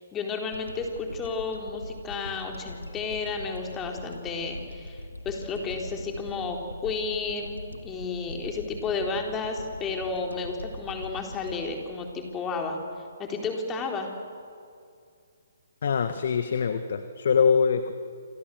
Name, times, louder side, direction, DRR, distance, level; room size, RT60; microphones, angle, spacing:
voice 1, 0.0-12.8 13.2-14.1, left 4 dB, 15° left, 2 dB, 4.1 m, -32 dB
sound 1, 0.5-13.0, left 1 dB, 90° left, 2.6 m, -42 dB
voice 2, 15.8-18.1, left 6 dB, 55° left, 9 dB, 1.5 m, -24 dB
28.0 x 27.0 x 7.9 m, 2.3 s
figure-of-eight pair, 135°, 0 cm